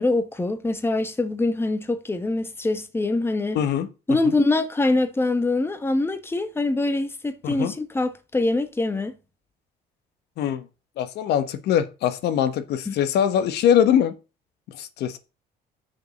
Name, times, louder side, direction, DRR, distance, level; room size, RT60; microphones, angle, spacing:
voice 1, 0.0-3.6 4.1-9.2 12.9-13.0, left 2 dB, 15° left, 1.3 m, -24 dB
voice 2, 3.5-3.9 4.2-4.3 7.4-7.7 10.4-10.6 11.0-14.1 14.7-15.2, left 9 dB, 75° left, 1.3 m, -22 dB
6.7 x 6.6 x 6.4 m
cardioid pair, 110°, 17 cm